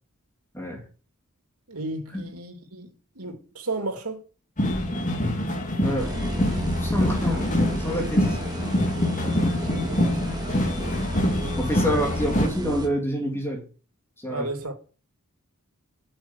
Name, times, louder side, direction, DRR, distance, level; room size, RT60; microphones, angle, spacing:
voice 1, 1.7-4.2 9.7-10.2 11.9-12.0 14.3-14.9, right 2 dB, 85° right, 2.7 m, -34 dB
sound 1, 4.6-12.5, left 1 dB, 35° left, 2.2 m, -25 dB
voice 2, 5.8-6.2 6.8-7.5 7.8-8.4 9.2-9.5 10.8-11.0 11.6-13.6 14.2-14.5, equal, 10° left, 2.4 m, -28 dB
sound 2, 6.0-12.9, equal, 20° right, 1.7 m, -32 dB
8.7 x 6.6 x 8.3 m
head